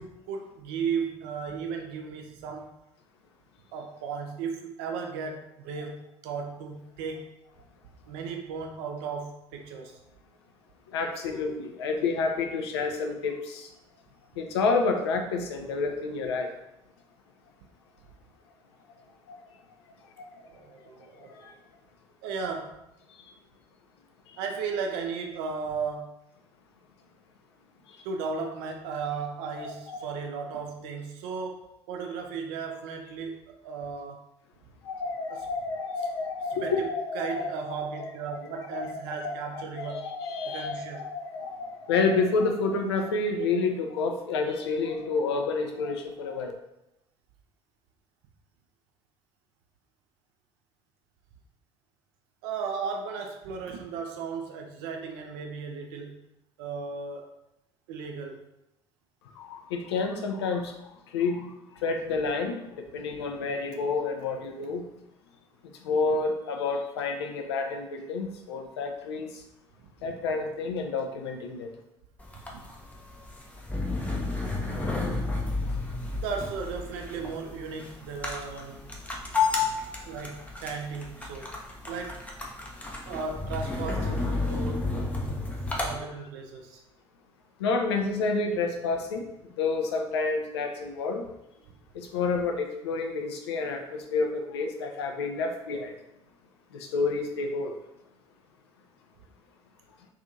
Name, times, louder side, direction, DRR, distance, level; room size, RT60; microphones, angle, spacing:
voice 1, 0.0-2.7 3.7-7.3 8.1-10.0 20.5-21.3 22.2-22.8 24.4-26.1 28.0-34.3 35.3-35.4 36.6-36.9 37.1-40.1 40.4-41.1 52.4-56.2 56.6-57.3 57.9-58.4 72.5-72.7 76.1-79.0 79.6-79.7 80.1-81.6 81.9-82.2 83.0-84.9 85.8-86.8, right 5 dB, 60° right, 4 dB, 0.4 m, -35 dB
voice 2, 10.9-13.7 14.4-16.5 19.3-19.4 20.2-20.3 21.3-21.5 24.3-24.4 29.5-30.1 34.8-37.5 38.0-38.4 38.7-46.5 59.4-60.7 61.1-61.5 61.8-64.8 65.8-69.4 70.0-71.7 86.2-86.3 87.6-89.2 89.6-91.2 91.9-95.9 96.7-97.7, left 4 dB, 70° left, 4 dB, 0.4 m, -29 dB
sound 1, 72.2-85.9, left 3 dB, 10° left, 0.5 m, -32 dB
2.5 x 2.4 x 2.6 m, 0.86 s
figure-of-eight pair, 55°, 14 cm